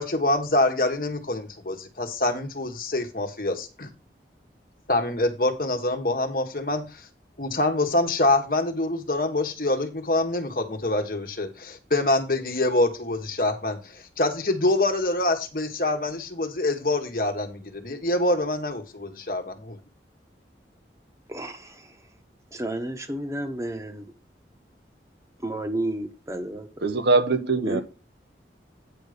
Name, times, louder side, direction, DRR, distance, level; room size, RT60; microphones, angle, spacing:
voice 1, 0.0-3.9 4.9-7.1 7.4-19.4, left 2 dB, 50° left, 1.4 m, -25 dB
voice 2, 21.3-21.9 22.5-24.0 25.4-26.7 27.7-27.8, right 1 dB, 15° right, 1.2 m, -31 dB
voice 3, 26.8-27.8, right 3 dB, 70° right, 1.0 m, -22 dB
8.9 x 5.3 x 5.1 m
head